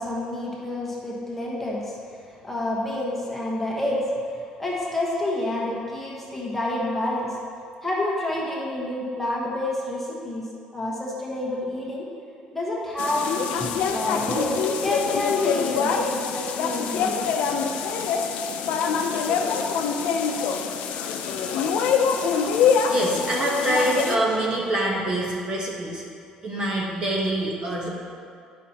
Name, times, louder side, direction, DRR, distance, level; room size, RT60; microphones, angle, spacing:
voice 1, 0.0-2.2 2.4-4.1 4.3-7.4 7.8-10.5 10.7-12.0 12.5-17.3, left 1 dB, 10° left, -5 dB, 1.1 m, -28 dB
sound 1, 13.0-24.2, left 6 dB, 75° left, 0.5 m, -25 dB
voice 2, 21.2-26.0 26.4-27.9, right 1 dB, 35° right, -2 dB, 1.0 m, -26 dB
9.1 x 5.6 x 2.9 m, 2.3 s
cardioid pair, 155°, 2 cm